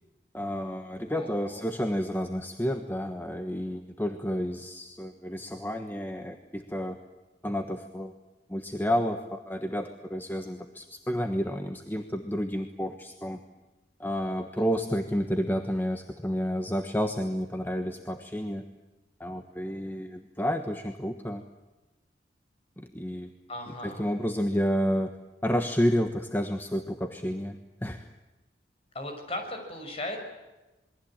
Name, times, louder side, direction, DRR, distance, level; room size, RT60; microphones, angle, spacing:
voice 1, 0.3-7.0 7.4-8.1 8.5-13.4 14.0-18.6 19.2-21.4 22.8-23.3 23.8-25.1 25.4-28.0, equal, 10° left, 6 dB, 1.3 m, -30 dB
voice 2, 1.1-1.7 23.5-24.1 28.9-30.2, left 1 dB, 35° left, 4 dB, 6.3 m, -37 dB
27.5 x 22.5 x 8.9 m, 1.1 s
head